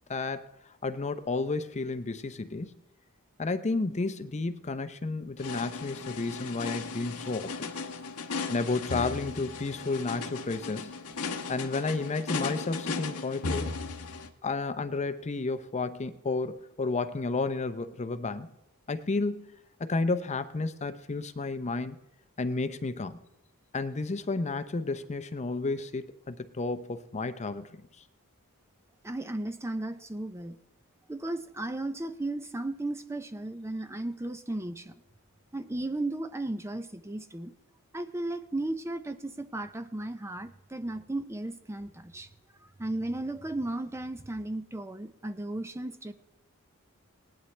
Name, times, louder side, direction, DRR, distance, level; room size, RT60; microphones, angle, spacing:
voice 1, 0.1-0.5 0.8-2.7 3.4-7.5 8.5-10.9 11.5-13.7 14.4-18.5 18.9-19.5 19.8-22.0 22.4-23.2 23.7-27.8, left 3 dB, 30° left, 0.6 m, -32 dB
sound 1, 5.4-14.3, left 4 dB, 80° left, 1.1 m, -36 dB
voice 2, 29.0-30.6 31.1-34.9 35.5-37.5 37.9-42.3 42.6-46.1, right 2 dB, 10° right, 0.5 m, -35 dB
18.5 x 11.0 x 3.3 m
head